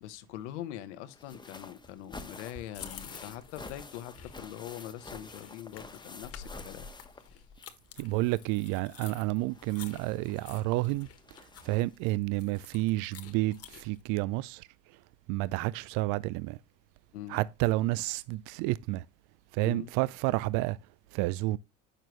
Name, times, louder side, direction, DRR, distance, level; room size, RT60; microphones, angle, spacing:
voice 1, 0.0-6.9 17.1-17.4 19.6-19.9, left 12 dB, 75° left, 1.1 m, -43 dB
sound 1, 1.1-7.8 8.1-12.1 13.1-13.2 13.6-13.7, left 2 dB, 15° left, 1.1 m, -49 dB
sound 2, 2.7-14.0, left 7 dB, 45° left, 1.4 m, -50 dB
voice 2, 8.0-11.1 11.6-14.7 15.3-16.6 17.3-19.1 19.5-20.8 21.1-21.6, right 19 dB, 60° right, 0.5 m, -30 dB
8.9 x 6.6 x 3.0 m
hypercardioid pair, 75°, 35 cm